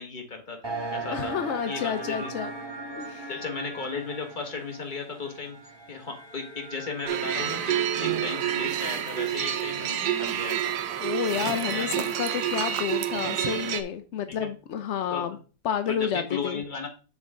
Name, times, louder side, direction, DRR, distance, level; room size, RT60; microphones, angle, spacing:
voice 1, 0.0-1.3 1.7-2.3 3.3-10.7 11.7-11.9 14.3-14.5 15.1-15.4 15.9-16.9, left 4 dB, 25° left, 1.6 m, -36 dB
sound 1, 0.6-12.0, right 2 dB, 15° right, 1.4 m, -40 dB
voice 2, 1.1-2.5 3.0-3.3 11.0-15.4 15.6-16.6, left 8 dB, 75° left, 0.6 m, -30 dB
sound 2, 7.1-13.8, right 10 dB, 70° right, 1.2 m, -28 dB
7.0 x 6.6 x 3.7 m
omnidirectional pair, 2.0 m